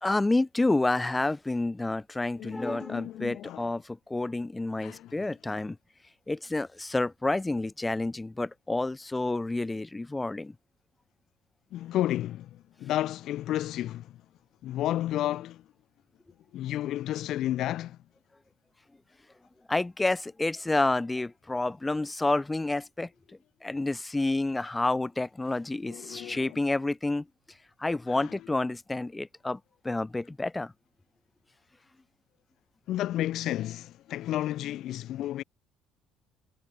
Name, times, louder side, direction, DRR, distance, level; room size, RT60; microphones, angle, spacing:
voice 1, 0.0-5.8 6.3-10.5 19.7-23.1 23.6-27.2 27.8-29.6 29.8-30.7, left 2 dB, 10° left, 2.4 m, -29 dB
voice 2, 2.4-3.7 4.8-5.1 11.7-14.2 14.6-15.6 16.5-18.0 25.8-26.6 28.1-28.4 32.9-35.4, left 13 dB, 60° left, 0.9 m, -32 dB
cardioid pair, 140°, 0 cm